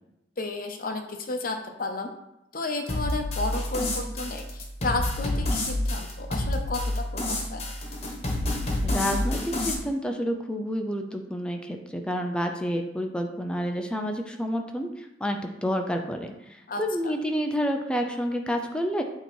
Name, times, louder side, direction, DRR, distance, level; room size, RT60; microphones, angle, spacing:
voice 1, 0.4-2.1 2.5-7.6 16.7-17.1, left 2 dB, 55° left, 5 dB, 0.8 m, -32 dB
sound 1, 2.9-9.7, left 1 dB, 35° left, 1.2 m, -29 dB
voice 2, 8.8-19.0, equal, 5° left, 3 dB, 0.4 m, -29 dB
8.1 x 3.0 x 4.4 m, 0.88 s
head